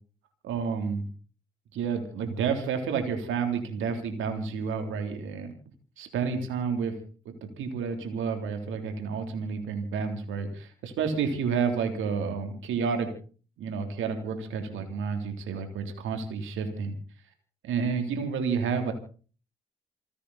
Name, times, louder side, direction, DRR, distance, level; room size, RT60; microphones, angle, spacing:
voice 1, 0.4-1.1 1.7-5.5 6.0-6.9 7.6-13.1 13.6-17.0 17.6-18.9, right 6 dB, 80° right, 6 dB, 3.5 m, -30 dB
29.0 x 9.9 x 4.2 m, 0.39 s
hypercardioid pair, 40°, 20 cm